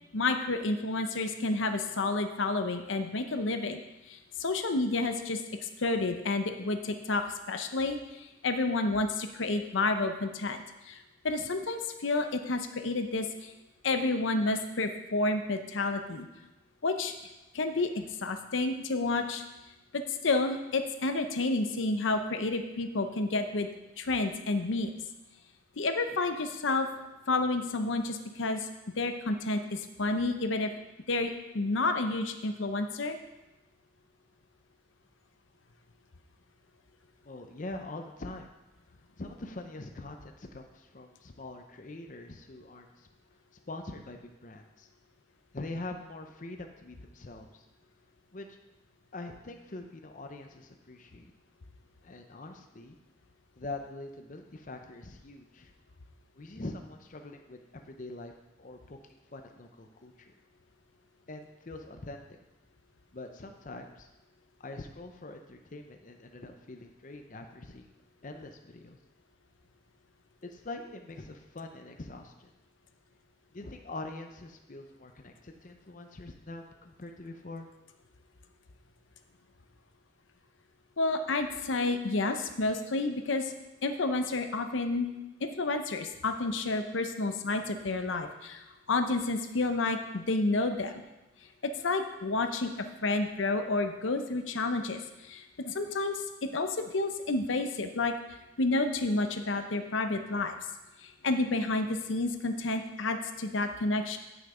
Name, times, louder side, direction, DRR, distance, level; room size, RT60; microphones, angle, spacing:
voice 1, 0.1-3.8 4.1-13.5 13.8-16.3 16.8-17.1 17.5-19.4 19.9-23.7 24.0-24.9 25.8-26.9 27.3-28.7 29.0-30.7 31.1-33.2 81.0-83.5 83.8-85.1 85.4-91.0 91.8-92.7 93.0-98.1 98.6-100.6 101.0-104.2, left 2 dB, 80° left, 7 dB, 0.7 m, -30 dB
voice 2, 37.2-38.5 39.2-43.1 43.7-44.9 45.5-47.6 48.3-48.6 49.1-51.3 52.0-53.0 53.6-55.7 56.3-58.3 58.6-59.0 59.3-60.3 61.3-62.4 63.1-64.1 64.6-67.9 68.2-69.0 70.4-72.5 73.5-77.7, left 2 dB, 40° left, 4 dB, 0.6 m, -43 dB
9.2 x 6.5 x 4.9 m, 1.0 s
head